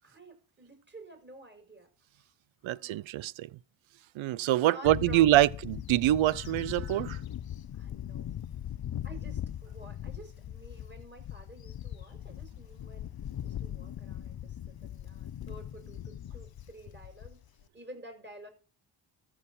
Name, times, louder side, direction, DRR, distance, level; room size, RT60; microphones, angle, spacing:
voice 1, 0.0-1.9 2.2-2.3 2.6-3.1 4.6-5.5 7.7-8.4 9.0-13.1 13.4-17.4 17.7-18.5, right 1 dB, 25° right, 5.8 m, -51 dB
voice 2, 2.6-3.5 4.2-7.2, right 14 dB, 80° right, 0.7 m, -25 dB
Bird / Wind, 4.9-17.6, left 10 dB, 50° left, 0.8 m, -40 dB
13.5 x 4.7 x 7.2 m
supercardioid pair, 55°, 46 cm